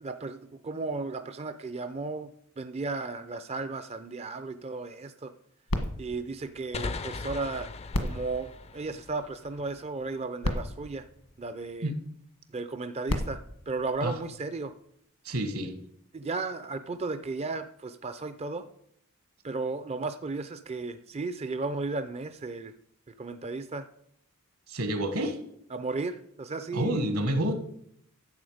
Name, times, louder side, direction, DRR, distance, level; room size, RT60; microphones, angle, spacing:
voice 1, 0.0-5.3 6.0-7.7 8.0-11.1 11.4-11.9 12.5-13.4 13.7-14.7 16.1-18.7 19.4-22.7 23.1-23.9 25.7-27.0, right 3 dB, 30° right, 10 dB, 0.5 m, -34 dB
sound 1, 5.7-7.3 7.9-9.5 10.1-10.2 10.4-12.0 12.8-14.7 15.4-15.5, left 1 dB, 80° left, 1.5 m, -35 dB
sound 2, 6.7-10.2, left 3 dB, 30° left, 0.4 m, -39 dB
voice 2, 15.2-15.8 24.7-25.4 26.7-27.5, right 1 dB, 70° right, 7 dB, 1.7 m, -28 dB
12.0 x 7.9 x 5.0 m, 0.71 s
head